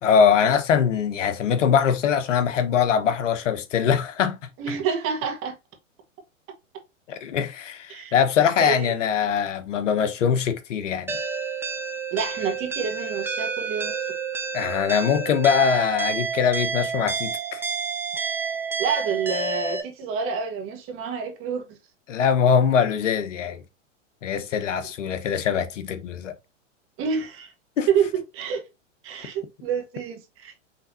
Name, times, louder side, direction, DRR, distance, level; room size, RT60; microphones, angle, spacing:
voice 1, 0.0-4.4 7.1-11.2 14.5-17.6 22.1-23.6 24.2-26.3 27.8-27.9, left 7 dB, 70° left, 1.1 m, -22 dB
voice 2, 4.6-5.5 7.9-8.2 8.6-9.0 12.1-14.1 18.8-21.8 27.0-27.5 27.9-28.6 29.0-30.6, right 6 dB, 35° right, 1.7 m, -28 dB
sound 1, 11.1-19.8, right 5 dB, 5° right, 0.7 m, -29 dB
5.6 x 3.4 x 2.7 m
hypercardioid pair, 115°, 38 cm